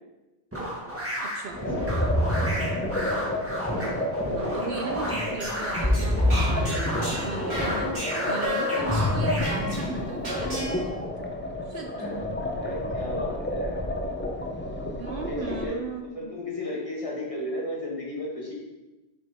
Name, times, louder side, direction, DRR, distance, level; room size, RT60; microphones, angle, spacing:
sound 1, 0.5-9.4, equal, 15° right, 1.6 m, -33 dB
voice 1, 1.2-1.6 3.7-4.0 4.4-11.0 11.7-11.9 15.0-16.3, right 4 dB, 60° right, 4 dB, 0.7 m, -37 dB
sound 2, 1.6-15.7, left 1 dB, 15° left, 0.5 m, -29 dB
voice 2, 4.3-4.7 5.1-5.4 11.9-13.8 14.6-14.7 15.2-18.5, left 1 dB, 30° left, -4 dB, 1.7 m, -35 dB
sound 3, 5.3-10.9, left 2 dB, 85° right, 2.3 m, -34 dB
7.4 x 5.2 x 3.5 m, 1.1 s
omnidirectional pair, 1.1 m